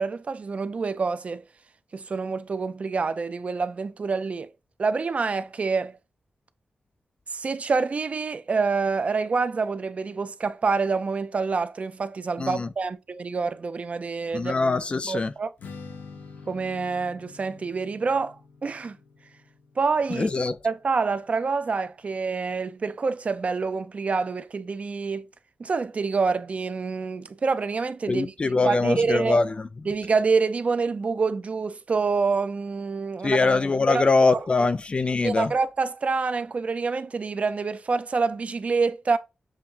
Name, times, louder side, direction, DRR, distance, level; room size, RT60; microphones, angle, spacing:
voice 1, 0.0-1.4 1.9-4.5 4.8-6.0 7.3-14.5 15.1-15.5 16.5-19.0 19.8-20.3 20.6-25.3 25.6-29.4 29.9-33.5 33.9-34.4 35.2-39.2, right 4 dB, 45° right, 0.4 m, -27 dB
voice 2, 12.4-12.7 14.3-15.3 20.1-20.6 28.1-29.7 33.2-35.5, left 3 dB, 35° left, 0.4 m, -23 dB
Strum, 15.6-21.9, left 4 dB, 85° left, 0.9 m, -47 dB
7.1 x 2.5 x 2.8 m
wide cardioid pair, 110°, 3 cm